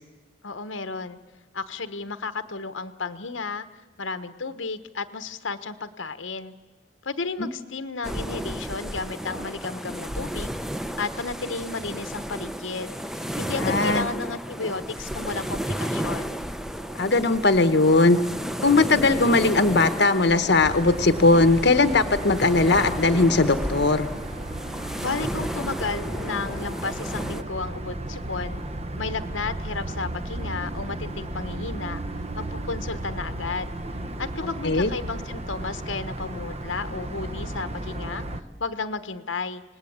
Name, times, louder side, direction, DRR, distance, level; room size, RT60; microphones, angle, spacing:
voice 1, 0.4-1.2 1.5-3.7 4.0-6.5 7.0-10.6 11.0-16.4 25.0-28.6 29.0-32.0 32.4-33.7 34.2-38.2 38.6-39.6, left 4 dB, 80° left, 11 dB, 1.1 m, -33 dB
sound 1, 8.0-27.4, equal, ahead, 0.7 m, -33 dB
voice 2, 13.6-14.0 17.0-18.2 18.6-24.1 34.6-34.9, left 3 dB, 60° left, 10 dB, 1.0 m, -19 dB
sound 2, 15.8-22.5, right 2 dB, 50° right, 7.3 m, -49 dB
sound 3, 20.6-38.4, right 1 dB, 35° right, 0.9 m, -34 dB
26.5 x 19.0 x 8.7 m, 1.3 s
head